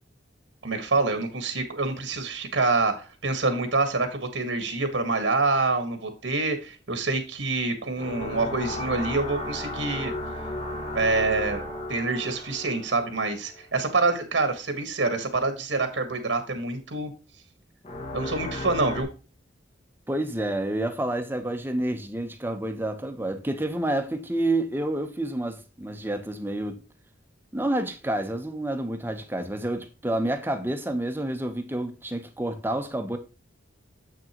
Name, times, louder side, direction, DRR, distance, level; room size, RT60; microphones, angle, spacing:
voice 1, 0.6-10.1 10.9-11.6 11.9-17.1 18.1-19.1, right 3 dB, 85° right, 1.5 m, -26 dB
sound 1, 8.0-13.8 17.8-19.0, left 1 dB, 35° left, 1.4 m, -34 dB
voice 2, 20.1-26.8 27.5-33.2, right 1 dB, 10° right, 0.9 m, -29 dB
7.5 x 6.4 x 3.0 m
head